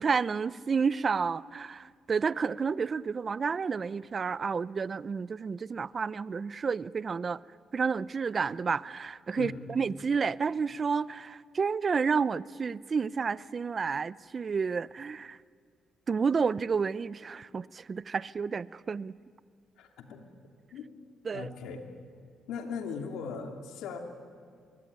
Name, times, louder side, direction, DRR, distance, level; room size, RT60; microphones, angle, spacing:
voice 1, 0.0-7.4 7.7-15.4 16.1-19.1 21.2-21.5, right 5 dB, 40° right, 19 dB, 0.6 m, -30 dB
voice 2, 19.8-20.2 20.7-20.9 21.3-21.8 22.5-24.0, left 6 dB, 85° left, 4 dB, 2.9 m, -38 dB
24.0 x 22.5 x 9.9 m, 2.1 s
cardioid pair, 90°, 0 cm